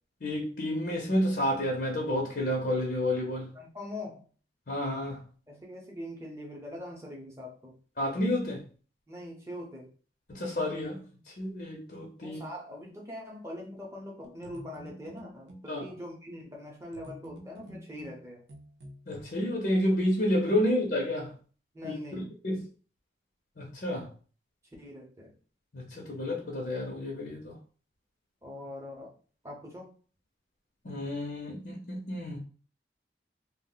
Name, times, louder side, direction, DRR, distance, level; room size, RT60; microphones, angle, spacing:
voice 1, 0.2-3.6 4.7-5.2 8.0-8.6 10.3-12.4 15.7-15.8 19.1-21.3 21.8-21.9 22.4-22.7 23.6-24.1 25.7-27.6 30.8-32.4, left 1 dB, 55° left, 0.6 m, -30 dB
voice 2, 3.5-4.3 5.5-7.7 9.1-9.9 12.2-18.4 21.7-22.3 24.8-25.3 28.4-29.1 29.4-29.9, left 1 dB, 15° right, 0.7 m, -42 dB
sound 1, 14.2-15.7 16.9-19.2, equal, 90° right, 0.7 m, -49 dB
2.4 x 2.1 x 3.8 m
head